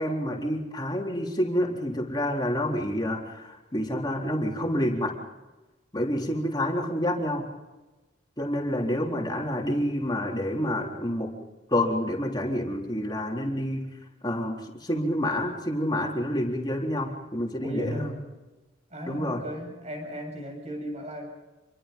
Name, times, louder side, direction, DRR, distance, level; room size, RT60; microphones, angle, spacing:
voice 1, 0.0-5.1 5.9-7.5 8.4-11.3 11.7-13.9 14.2-18.1 19.1-19.4, left 1 dB, 20° left, 0 dB, 3.9 m, -28 dB
voice 2, 8.7-9.7 17.6-18.2 18.9-21.3, equal, 35° right, 2 dB, 7.9 m, -37 dB
28.0 x 23.5 x 5.5 m, 1.1 s
head